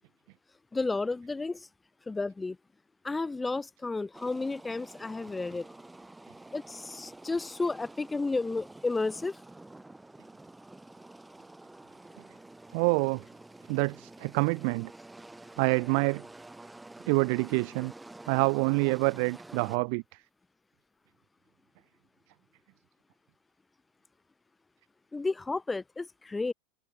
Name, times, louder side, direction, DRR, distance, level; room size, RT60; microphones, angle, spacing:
voice 1, 0.7-1.7 2.1-2.6 3.0-5.7 6.5-9.4 25.1-26.5, left 3 dB, 15° left, 0.4 m, -32 dB
sound 1, 4.1-19.8, right 2 dB, 10° right, 2.6 m, -49 dB
voice 2, 12.7-13.2 13.7-14.9 15.6-16.2 17.1-17.9 18.3-20.0, right 37 dB, 55° right, 0.3 m, -27 dB
figure-of-eight pair, 85°, 0 cm